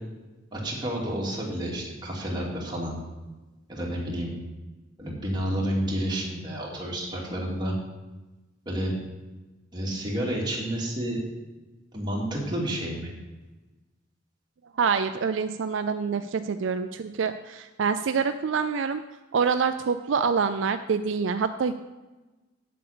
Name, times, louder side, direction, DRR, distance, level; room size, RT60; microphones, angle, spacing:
voice 1, 0.5-3.0 3.7-4.3 5.0-7.7 8.7-9.0 9.7-11.2 11.9-13.1, right 1 dB, 25° right, -3 dB, 2.7 m, -30 dB
voice 2, 14.8-19.0 19.3-21.7, right 5 dB, 70° right, 9 dB, 0.4 m, -26 dB
8.6 x 7.8 x 6.8 m, 1.1 s
head